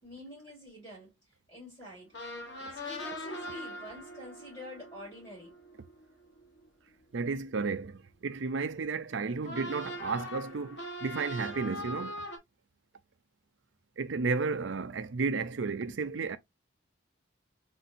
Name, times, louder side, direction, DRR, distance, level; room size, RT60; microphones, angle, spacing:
voice 1, 0.0-1.1 1.5-2.1 2.6-5.5, left 1 dB, 20° left, 3.1 m, -47 dB
sound 1, 2.1-6.9 9.4-12.4, left 1 dB, 65° left, 1.3 m, -41 dB
voice 2, 7.1-12.2 14.0-16.4, right 4 dB, 75° right, 0.5 m, -33 dB
4.3 x 3.9 x 2.5 m
head